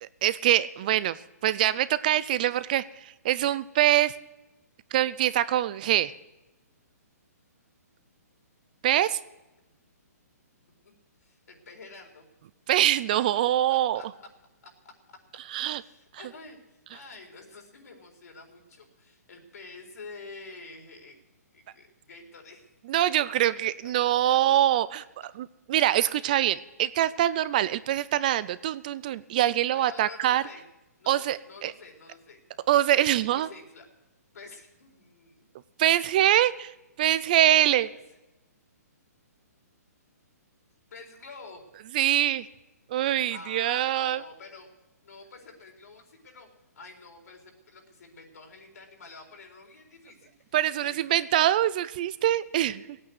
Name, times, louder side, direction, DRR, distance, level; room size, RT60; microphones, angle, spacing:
voice 1, 0.0-4.1 4.9-6.1 8.8-9.2 12.7-14.0 15.5-15.8 22.9-25.0 25.4-30.4 31.1-31.7 32.7-33.5 35.8-36.7 37.0-37.9 41.9-42.5 42.9-44.2 50.5-52.9, right 12 dB, 30° right, 16 dB, 0.4 m, -24 dB
voice 2, 11.2-12.3 13.3-13.4 13.7-14.3 14.6-14.9 15.8-21.2 21.5-22.8 24.3-24.6 29.7-30.6 31.0-32.4 33.3-33.8 34.3-35.4 37.9-38.0 40.9-41.6 43.3-44.7 45.0-46.5 46.7-51.2, left 3 dB, 70° left, 2 dB, 4.2 m, -48 dB
17.0 x 8.8 x 7.9 m, 1.0 s
hypercardioid pair, 165°, 9 cm